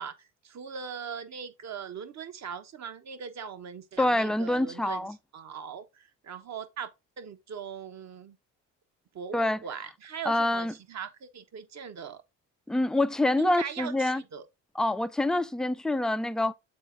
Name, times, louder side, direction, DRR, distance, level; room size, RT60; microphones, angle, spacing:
voice 1, 0.0-5.1 5.3-6.9 7.2-8.4 9.1-12.2 13.4-14.4, right 7 dB, 45° right, 1.2 m, -40 dB
voice 2, 4.0-5.2 9.3-9.6 10.3-10.7 12.7-14.2 14.8-16.5, left 1 dB, ahead, 0.4 m, -26 dB
7.7 x 4.2 x 3.8 m
supercardioid pair, 70°, 38 cm